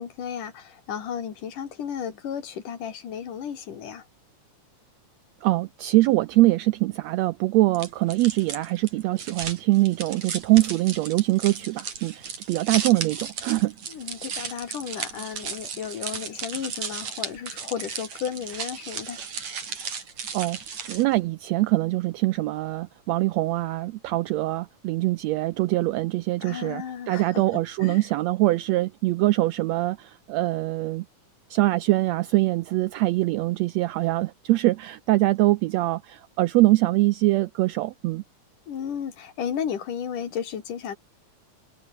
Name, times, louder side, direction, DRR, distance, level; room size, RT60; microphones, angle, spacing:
voice 1, 0.0-4.0 13.9-19.2 26.4-27.4 27.8-28.0 38.7-41.0, left 8 dB, 85° left, 4.2 m, -33 dB
voice 2, 5.4-13.7 20.3-20.6 20.9-31.0 31.5-38.2, right 18 dB, 85° right, 1.5 m, -23 dB
sound 1, 7.7-21.2, right 6 dB, 65° right, 4.8 m, -35 dB
omnidirectional pair, 3.6 m